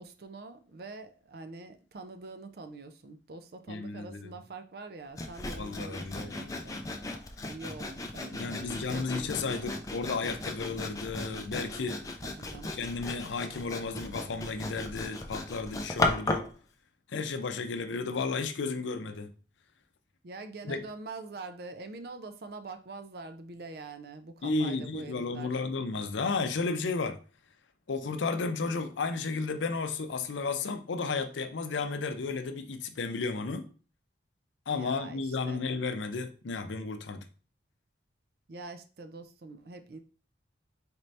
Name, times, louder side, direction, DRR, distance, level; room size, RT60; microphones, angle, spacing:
voice 1, 0.0-6.8 7.5-9.7 12.2-12.8 20.2-25.6 34.7-35.6 38.5-40.0, right 3 dB, 55° right, 0.4 m, -45 dB
voice 2, 3.7-4.3 5.6-6.5 8.3-12.0 12.7-16.5 17.1-19.3 20.6-20.8 24.4-27.2 27.9-33.7 34.7-37.3, left 4 dB, 80° left, 0.5 m, -33 dB
Sawing, 5.2-16.5, left 2 dB, 20° left, 0.4 m, -36 dB
4.3 x 2.6 x 3.2 m
head